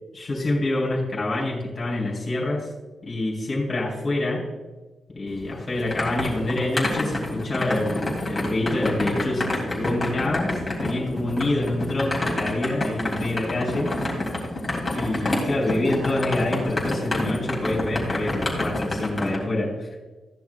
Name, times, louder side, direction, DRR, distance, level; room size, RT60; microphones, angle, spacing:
voice 1, 0.1-2.7 3.0-4.4 5.1-14.0 14.9-19.9, left 2 dB, 30° left, -3 dB, 3.6 m, -26 dB
sound 1, 5.3-19.4, left 1 dB, 15° left, 3.1 m, -28 dB
15.5 x 10.5 x 2.4 m, 1.2 s
wide cardioid pair, 150°, 0 cm